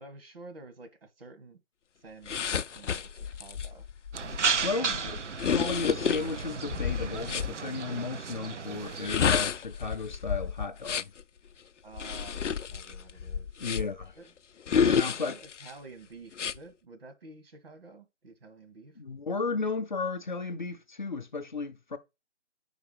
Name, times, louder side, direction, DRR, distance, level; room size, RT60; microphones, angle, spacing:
voice 1, 0.0-1.6 2.0-3.8 4.9-5.2 11.8-14.3 14.7-18.9, right 3 dB, 55° right, 1.7 m, -50 dB
sound 1, 2.3-7.5 8.9-11.2 11.9-14.1 14.7-15.7 16.3-16.6, left 7 dB, 85° left, 0.5 m, -30 dB
sound 2, 4.1-9.4, right 5 dB, 80° right, 0.8 m, -34 dB
voice 2, 4.6-5.2 5.5-11.1 13.6-14.2 14.7-15.4 19.0-22.0, left 4 dB, 40° left, 0.6 m, -34 dB
5.2 x 4.9 x 4.8 m
figure-of-eight pair, 155°, 36 cm